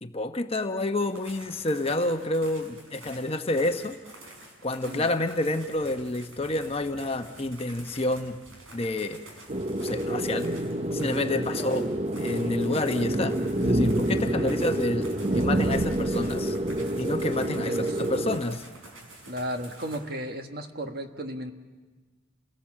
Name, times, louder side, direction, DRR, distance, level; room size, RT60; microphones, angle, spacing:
voice 1, 0.0-4.0 4.6-8.4 8.7-9.2 9.8-10.5 10.9-16.6 17.0-18.7, left 2 dB, 30° left, 6 dB, 0.9 m, -29 dB
sound 1, 1.1-20.0, right 2 dB, 90° right, 5.5 m, -48 dB
sound 2, 9.5-18.4, right 1 dB, 30° right, 0.7 m, -27 dB
voice 2, 17.7-18.0 19.3-21.5, equal, 50° right, 5 dB, 1.4 m, -35 dB
29.5 x 18.5 x 7.4 m, 1.3 s
head